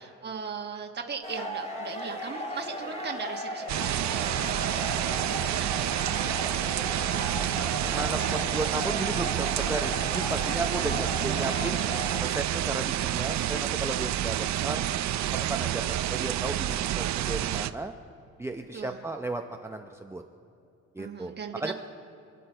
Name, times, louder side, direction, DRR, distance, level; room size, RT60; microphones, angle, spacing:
voice 1, 0.0-7.6 10.8-11.4 18.7-19.0 21.0-21.7, right 6 dB, 35° right, 2 dB, 1.4 m, -39 dB
sound 1, 1.2-12.2, equal, 20° left, 2.9 m, -36 dB
sound 2, 3.7-17.7, right 12 dB, 65° right, 0.6 m, -29 dB
voice 2, 7.8-11.8 12.2-14.8 15.3-17.9 18.4-20.2 20.9-21.7, right 2 dB, 10° right, 4 dB, 0.7 m, -34 dB
29.0 x 10.0 x 4.5 m, 2.7 s
cardioid pair, 90°, 30 cm